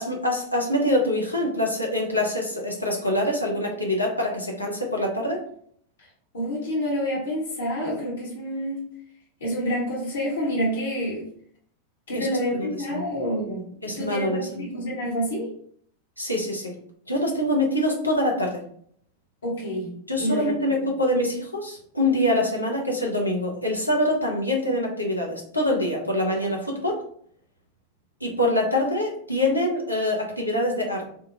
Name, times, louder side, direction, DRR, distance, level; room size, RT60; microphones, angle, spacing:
voice 1, 0.0-5.4 12.1-12.3 12.5-12.7 12.9-13.0 13.8-14.6 16.2-16.7 17.1-18.6 20.1-27.0 28.2-31.0, left 1 dB, 85° left, -1 dB, 0.8 m, -25 dB
voice 2, 6.3-8.9 9.4-11.3 12.1-15.5 19.4-20.7, equal, 65° left, -6 dB, 1.2 m, -28 dB
3.5 x 2.3 x 2.6 m, 0.62 s
figure-of-eight pair, 90°, 0 cm